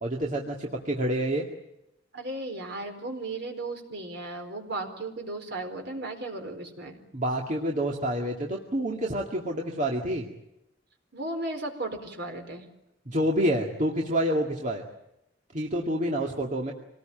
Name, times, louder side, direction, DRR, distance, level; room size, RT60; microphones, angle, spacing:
voice 1, 0.0-1.4 7.1-10.3 13.1-14.8 15.5-16.7, right 1 dB, 40° right, 0 dB, 2.2 m, -28 dB
voice 2, 2.1-7.0 11.1-12.6, right 2 dB, 60° right, 4 dB, 4.4 m, -35 dB
26.0 x 19.0 x 9.0 m, 0.87 s
head